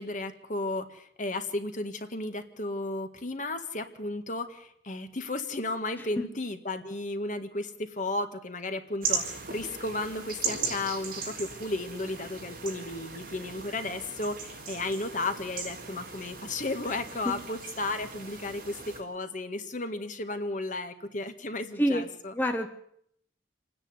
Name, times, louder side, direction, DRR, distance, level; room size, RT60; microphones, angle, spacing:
voice 1, 0.0-22.3, left 2 dB, 45° left, 7 dB, 1.8 m, -34 dB
sound 1, 9.0-19.0, right 5 dB, 50° right, 4.4 m, -37 dB
voice 2, 22.3-22.7, equal, 10° left, 4 dB, 1.2 m, -26 dB
27.5 x 10.0 x 9.6 m, 0.70 s
head